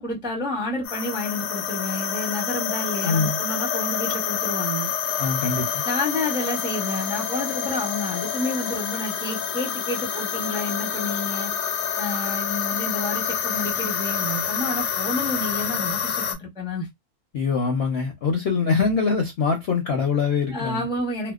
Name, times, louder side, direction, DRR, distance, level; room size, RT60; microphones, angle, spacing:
voice 1, 0.0-4.9 5.8-11.5 12.0-16.9 20.5-21.3, left 1 dB, 5° right, 0.4 m, -30 dB
sound 1, 0.8-16.4, left 8 dB, 85° left, 1.1 m, -27 dB
voice 2, 3.0-3.4 5.2-5.8 17.3-20.9, left 5 dB, 65° left, 0.6 m, -23 dB
2.7 x 2.1 x 2.3 m
omnidirectional pair, 1.7 m